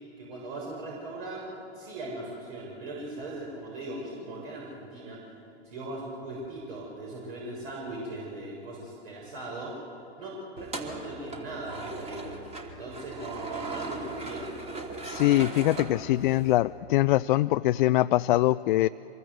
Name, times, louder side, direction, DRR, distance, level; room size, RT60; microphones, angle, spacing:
voice 1, 0.2-5.2 5.6-9.7 10.2-12.4 12.6-14.5, right 2 dB, 55° right, -3 dB, 6.9 m, -39 dB
sound 1, 10.6-16.6, right 3 dB, 20° right, 2.7 m, -38 dB
voice 2, 15.0-18.9, left 16 dB, 45° left, 11 dB, 0.5 m, -23 dB
25.5 x 22.0 x 8.1 m, 2.7 s
hypercardioid pair, 110°, 34 cm